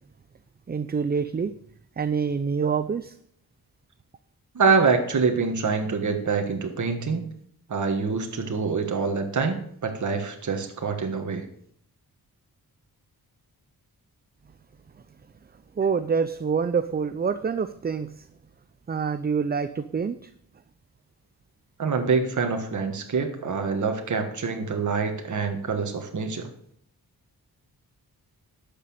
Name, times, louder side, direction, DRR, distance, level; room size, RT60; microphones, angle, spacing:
voice 1, 0.7-1.5 2.0-3.1 15.8-18.1 18.9-20.2, right 6 dB, 25° right, 12 dB, 0.5 m, -26 dB
voice 2, 4.5-7.2 7.7-11.5 21.8-26.5, right 5 dB, 50° right, 4 dB, 1.6 m, -25 dB
11.5 x 6.8 x 8.7 m, 0.66 s
wide cardioid pair, 145°, 37 cm